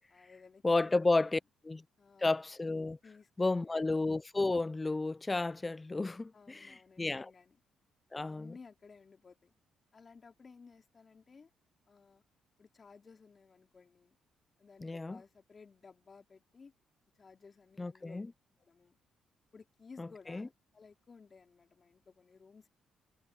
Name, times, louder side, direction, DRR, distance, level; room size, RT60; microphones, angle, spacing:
voice 1, 0.1-1.0 2.0-2.3 3.0-3.9 6.3-7.6 8.1-9.5 9.9-11.5 11.9-12.2 12.6-14.2 14.6-16.7 17.2-18.2 18.6-19.0 19.5-22.7, left 5 dB, 35° left, 4.0 m, -57 dB
voice 2, 0.6-1.8 2.2-3.0 3.4-7.3 8.1-8.5 14.8-15.2 17.8-18.3 20.0-20.5, left 2 dB, 20° left, 0.5 m, -32 dB
cardioid pair, 90°, 0 cm